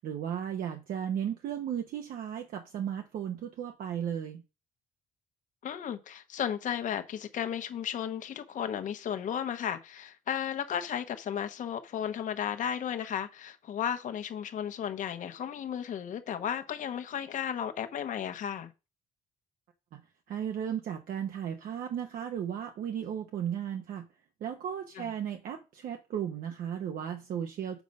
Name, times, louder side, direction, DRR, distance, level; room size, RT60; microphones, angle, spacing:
voice 1, 0.0-4.4 19.9-20.0 20.3-24.1 24.4-27.8, right 9 dB, 70° right, 0.9 m, -35 dB
voice 2, 5.6-18.7 25.0-25.1, left 9 dB, 55° left, 1.0 m, -34 dB
7.3 x 5.0 x 5.4 m
cardioid pair, 135°, 15 cm